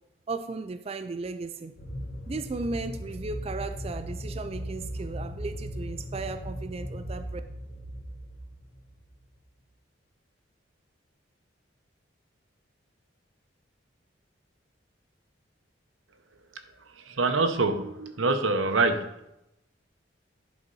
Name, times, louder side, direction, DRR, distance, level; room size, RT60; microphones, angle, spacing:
voice 1, 0.3-1.7 2.3-7.4, right 3 dB, 30° right, 8 dB, 0.4 m, -35 dB
sound 1, 1.8-9.1, equal, 60° left, 1.4 m, -37 dB
voice 2, 17.2-19.1, right 3 dB, 90° right, 7 dB, 0.9 m, -25 dB
10.5 x 4.0 x 5.4 m, 0.85 s
head